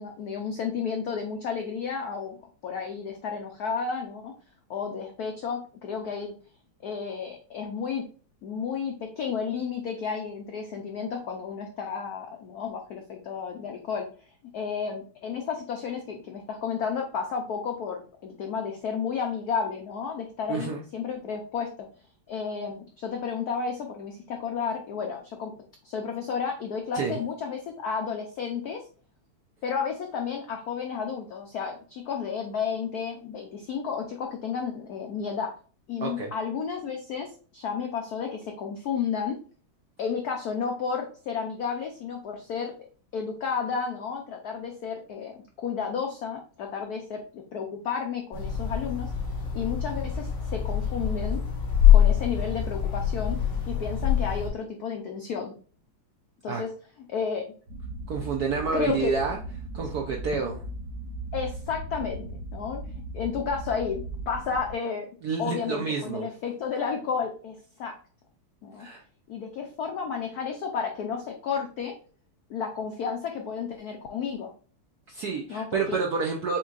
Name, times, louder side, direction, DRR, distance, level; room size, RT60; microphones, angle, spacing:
voice 1, 0.0-4.3 4.7-6.3 6.8-8.1 8.4-14.1 14.5-21.7 22.3-25.5 25.8-28.8 29.6-35.5 35.9-39.4 40.0-42.7 43.1-49.1 49.5-51.4 51.9-53.4 53.6-55.5 56.4-56.7 57.1-57.4 58.7-59.1 61.3-62.8 63.1-65.1 65.4-68.0 68.6-68.9 69.3-72.0 72.5-74.5 75.5-76.0, left 6 dB, 90° left, 3 dB, 0.8 m, -32 dB
voice 2, 20.5-20.8 26.9-27.2 36.0-36.3 56.5-56.6 58.1-59.4 59.7-60.6 65.2-66.3 68.8-69.0 75.1-76.6, right 5 dB, 80° right, 1 dB, 0.8 m, -29 dB
sound 1, 48.3-54.5, left 9 dB, 55° left, 2.3 m, -24 dB
sound 2, 57.7-64.7, right 2 dB, 60° right, 1.4 m, -38 dB
7.0 x 3.0 x 2.4 m, 0.40 s
omnidirectional pair, 2.4 m